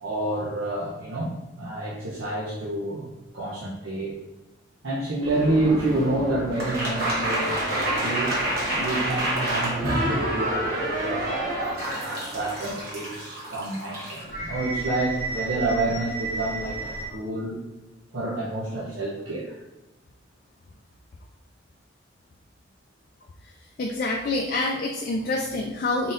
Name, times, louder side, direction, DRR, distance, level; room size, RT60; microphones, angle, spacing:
voice 1, 0.0-4.2 4.8-8.4 8.7-11.2 11.9-17.6 18.1-19.6, right 2 dB, 85° right, -7 dB, 0.8 m, -28 dB
sound 1, 5.2-17.0, right 1 dB, 50° right, 1.0 m, -29 dB
voice 2, 23.8-26.1, left 2 dB, 45° left, 1 dB, 0.3 m, -26 dB
4.0 x 3.8 x 2.5 m, 1.0 s
head